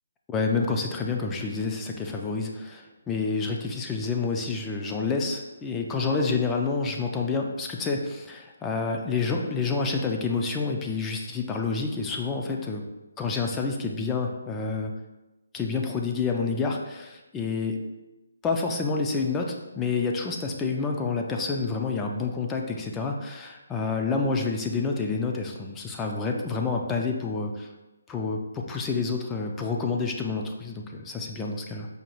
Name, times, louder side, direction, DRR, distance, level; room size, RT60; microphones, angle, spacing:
voice 1, 0.3-12.8 13.2-14.9 15.5-17.8 18.4-27.7 28.1-31.9, left 4 dB, 10° left, 1 dB, 0.3 m, -28 dB
5.0 x 2.3 x 3.0 m, 1.0 s
figure-of-eight pair, 155°, 0 cm